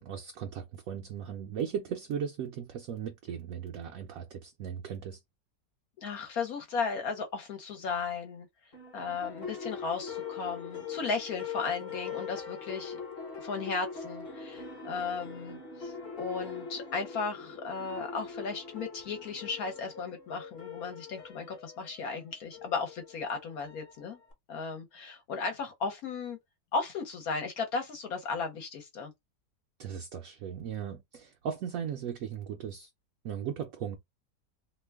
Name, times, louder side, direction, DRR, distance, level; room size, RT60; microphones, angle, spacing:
voice 1, 0.0-5.2 29.8-32.9 33.2-34.0, right 8 dB, 65° right, 0.9 m, -37 dB
voice 2, 6.0-8.5 8.9-13.0 13.4-24.2 24.5-26.4 26.7-29.1, left 4 dB, 65° left, 1.2 m, -35 dB
sound 1, 8.7-24.3, left 5 dB, 40° left, 1.0 m, -42 dB
2.9 x 2.2 x 3.4 m
omnidirectional pair, 1.8 m